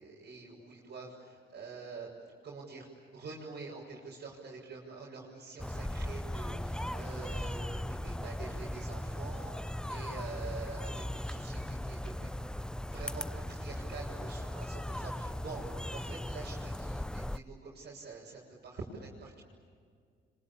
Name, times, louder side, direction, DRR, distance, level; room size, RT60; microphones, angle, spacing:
voice 1, 0.0-2.1 2.4-12.3 12.9-19.4, right 4 dB, 55° right, -5 dB, 6.7 m, -46 dB
sound 1, 5.6-17.4, left 1 dB, 5° left, 0.6 m, -38 dB
26.5 x 25.5 x 8.6 m, 2.1 s
cardioid pair, 90°, 20 cm